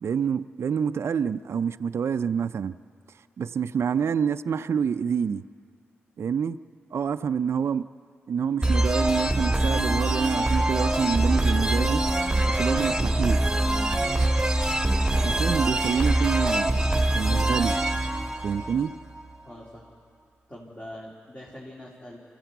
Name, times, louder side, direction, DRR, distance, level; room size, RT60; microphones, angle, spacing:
voice 1, 0.0-2.8 3.4-5.4 6.2-6.6 6.9-7.9 8.3-12.0 12.4-13.5 15.2-16.7 17.1-17.8 18.4-18.9, right 7 dB, 65° right, 11 dB, 0.5 m, -27 dB
sound 1, 8.6-19.2, right 1 dB, 10° right, 1.6 m, -24 dB
voice 2, 15.1-15.5 19.4-19.9 20.5-22.2, left 1 dB, 30° left, -5 dB, 3.7 m, -42 dB
25.0 x 14.5 x 8.1 m, 2.3 s
cardioid pair, 50°, 5 cm